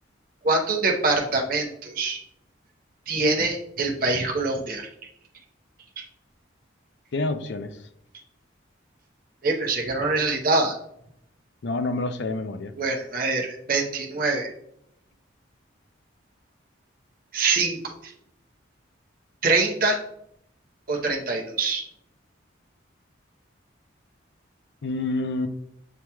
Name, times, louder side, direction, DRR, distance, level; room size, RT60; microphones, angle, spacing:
voice 1, 0.4-2.2 3.1-4.9 6.0-6.1 9.4-10.8 12.8-14.5 17.3-18.1 19.4-20.0 20.9-21.9, right 3 dB, 45° right, 1 dB, 0.8 m, -24 dB
voice 2, 7.1-7.8 11.6-12.7 24.8-25.5, left 2 dB, 60° left, 9 dB, 0.4 m, -28 dB
7.9 x 2.9 x 2.3 m, 0.74 s
head